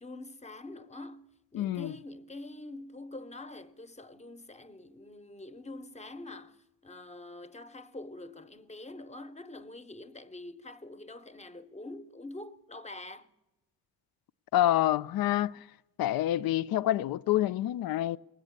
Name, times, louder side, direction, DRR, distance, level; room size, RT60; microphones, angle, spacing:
voice 1, 0.0-13.3, left 2 dB, 15° left, 0.8 m, -45 dB
voice 2, 1.5-1.9 14.5-15.6 16.0-18.2, left 13 dB, 60° left, 0.5 m, -27 dB
20.0 x 8.1 x 8.6 m
supercardioid pair, 50°, 41 cm